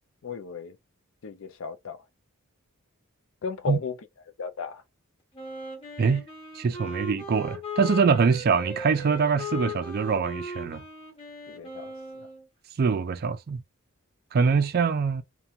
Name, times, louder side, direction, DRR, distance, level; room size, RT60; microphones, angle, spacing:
voice 1, 0.2-0.8 1.2-2.0 3.4-4.0 4.4-4.8 11.5-12.3, left 6 dB, 60° left, 0.4 m, -35 dB
Wind instrument woodwind instrument, 5.3-12.5, left 2 dB, 25° left, 0.9 m, -38 dB
voice 2, 6.5-10.8 12.8-13.6 14.3-15.2, right 5 dB, 45° right, 0.3 m, -24 dB
2.8 x 2.2 x 2.4 m
head